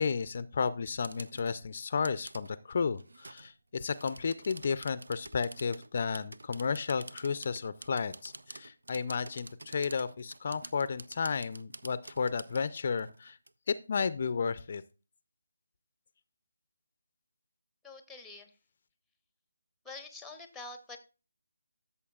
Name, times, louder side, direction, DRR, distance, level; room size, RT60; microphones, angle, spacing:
voice 1, 0.0-13.4 13.7-14.8, left 5 dB, 45° left, 15 dB, 0.4 m, -33 dB
sound 1, 0.8-1.6 2.0-2.5 3.0-3.5 3.9-13.5, right 2 dB, 85° right, 0.6 m, -49 dB
voice 2, 17.8-18.5 19.8-21.0, left 3 dB, ahead, 8 dB, 0.7 m, -46 dB
13.0 x 6.9 x 2.3 m, 0.34 s
figure-of-eight pair, 165°, 0 cm